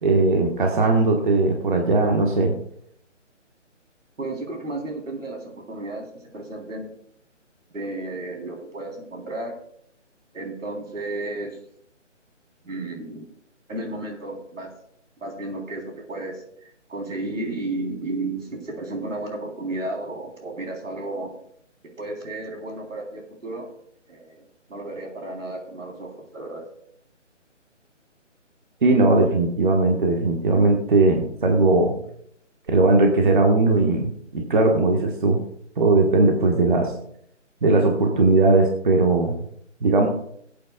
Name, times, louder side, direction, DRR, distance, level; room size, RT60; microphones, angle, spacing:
voice 1, 0.0-2.5 28.8-31.9 32.7-35.4 35.8-36.9 37.6-39.3 39.8-40.1, right 2 dB, 40° right, 1 dB, 1.4 m, -19 dB
voice 2, 4.2-6.9 7.7-9.5 10.3-11.6 12.6-13.3 13.7-14.7 15.2-21.3 21.8-23.7 24.1-24.4 24.7-26.7, right 2 dB, 85° right, 1 dB, 3.6 m, -33 dB
20.5 x 8.6 x 2.3 m, 0.69 s
hypercardioid pair, 170°, 37 cm